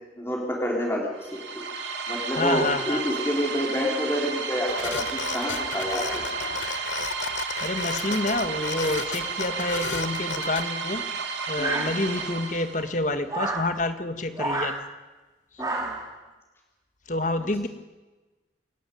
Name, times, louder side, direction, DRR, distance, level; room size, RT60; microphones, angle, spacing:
voice 1, 0.2-1.7 2.1-6.2 11.6-11.9 15.6-15.9, equal, 15° left, -2 dB, 3.8 m, -28 dB
sound 1, 1.2-13.0, right 5 dB, 90° right, 2.7 m, -32 dB
voice 2, 2.3-3.0 7.6-11.0 11.5-14.7 17.1-17.7, left 2 dB, 45° left, 9 dB, 1.6 m, -28 dB
sound 2, 4.7-10.6, left 5 dB, 85° left, 1.1 m, -34 dB
sound 3, 11.6-12.3 13.3-13.7 14.4-14.8 15.6-16.1, right 2 dB, 20° right, 3.0 m, -29 dB
27.5 x 11.5 x 9.4 m, 1.2 s
head